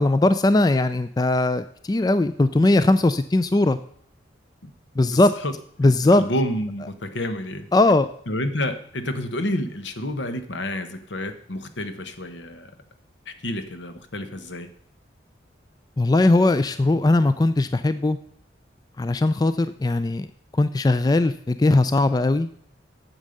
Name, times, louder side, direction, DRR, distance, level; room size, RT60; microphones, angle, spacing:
voice 1, 0.0-3.8 5.0-5.3 5.8-6.2 7.7-8.1 16.0-18.2 19.0-20.3 20.5-22.5, left 2 dB, 20° left, 13 dB, 0.3 m, -19 dB
voice 2, 5.1-5.5 5.8-7.7 8.3-12.7 13.3-14.7, left 1 dB, 75° left, 9 dB, 1.2 m, -29 dB
9.0 x 7.3 x 6.5 m, 0.64 s
head